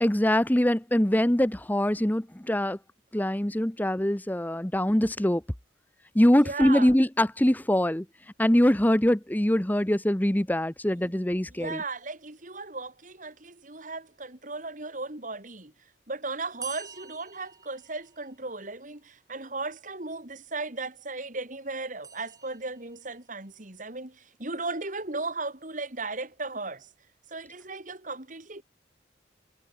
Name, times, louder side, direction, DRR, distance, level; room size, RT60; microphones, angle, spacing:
voice 1, 0.0-2.8 3.1-5.4 6.1-8.1 8.4-11.8, left 1 dB, 10° left, 0.8 m, -23 dB
voice 2, 6.4-6.9 11.5-15.7 16.1-26.9 27.3-28.6, right 3 dB, 45° right, 3.0 m, -36 dB
sound 1, 16.6-18.6 22.0-23.1, right 6 dB, 20° right, 6.9 m, -45 dB
head